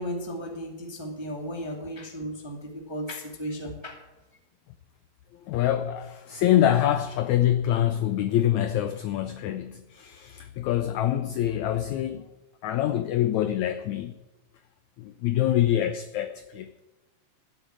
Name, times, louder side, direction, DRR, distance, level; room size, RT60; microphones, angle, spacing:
voice 1, 0.0-4.0, equal, 15° right, 1.2 m, -35 dB
voice 2, 5.4-12.2 12.6-14.2 15.0-16.8, left 12 dB, 80° left, 1.6 m, -25 dB
13.0 x 8.1 x 8.9 m
omnidirectional pair, 4.0 m